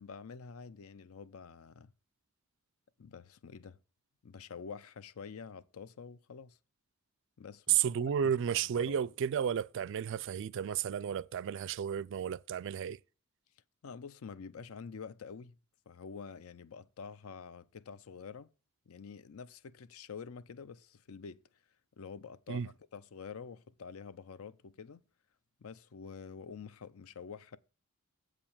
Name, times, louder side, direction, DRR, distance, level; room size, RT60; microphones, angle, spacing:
voice 1, 0.0-1.9 3.0-3.8 4.2-6.6 7.4-9.0 13.8-15.6 15.9-18.5 18.9-21.4 22.0-25.0 25.6-27.6, left 5 dB, 70° left, 0.5 m, -47 dB
voice 2, 7.7-13.0 22.5-22.7, right 8 dB, 55° right, 0.3 m, -32 dB
7.7 x 5.0 x 7.1 m
head